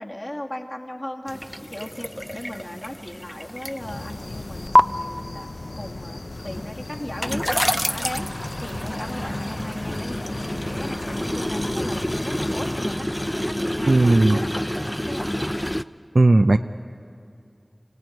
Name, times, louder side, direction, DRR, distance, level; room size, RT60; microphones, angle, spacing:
voice 1, 0.0-5.5 5.7-15.5, left 1 dB, 35° left, -1 dB, 2.5 m, -37 dB
sound 1, 1.3-4.8 6.3-15.8, equal, 10° left, 0.5 m, -27 dB
sound 2, 3.8-12.8, left 2 dB, 80° left, 0.6 m, -36 dB
sound 3, 8.6-14.2, left 1 dB, 60° left, 3.1 m, -36 dB
voice 2, 13.9-14.4 16.1-16.6, right 2 dB, 75° right, 7 dB, 0.5 m, -15 dB
26.0 x 17.0 x 9.5 m, 2.5 s
wide cardioid pair, 40°, 0 cm